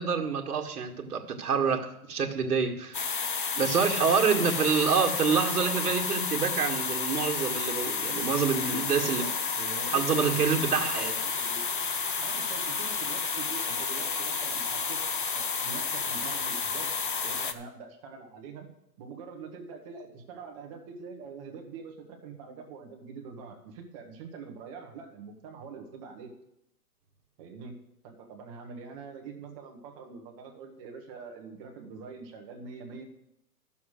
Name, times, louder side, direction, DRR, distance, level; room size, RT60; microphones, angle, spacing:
voice 1, 0.0-3.1 3.6-9.3 9.9-11.2, right 6 dB, 75° right, 1.9 m, -27 dB
sound 1, 2.9-17.5, left 5 dB, 35° left, 0.4 m, -31 dB
voice 2, 4.4-4.8 9.0-10.7 10.9-11.6 12.2-15.0 15.3-16.9 17.2-18.7 19.0-26.3 27.4-27.8 28.0-33.0, right 5 dB, 20° right, 1.3 m, -44 dB
13.0 x 7.2 x 6.4 m
hypercardioid pair, 165°, 47 cm